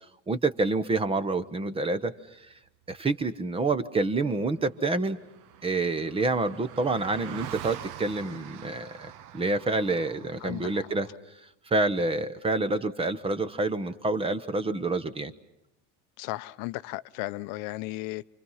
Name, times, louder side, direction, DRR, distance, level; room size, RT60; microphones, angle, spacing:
voice 1, 0.3-2.1 2.9-5.2 5.6-11.1 11.7-15.3, right 3 dB, 15° right, 0.9 m, -27 dB
Car passing by, 4.0-4.1 4.3-11.1, right 10 dB, 60° right, 1.1 m, -45 dB
voice 2, 10.4-10.9 16.2-18.4, left 18 dB, 65° left, 0.8 m, -35 dB
29.0 x 25.0 x 5.6 m
cardioid pair, 155°, 37 cm